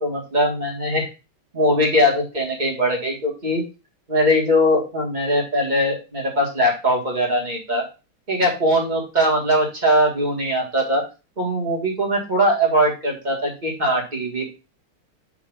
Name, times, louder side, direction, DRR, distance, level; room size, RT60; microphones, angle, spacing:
voice 1, 0.0-1.1 1.5-3.6 4.1-7.8 8.3-11.0 11.4-14.5, equal, 25° right, -1 dB, 1.6 m, -21 dB
6.8 x 2.9 x 5.3 m, 0.30 s
omnidirectional pair, 2.3 m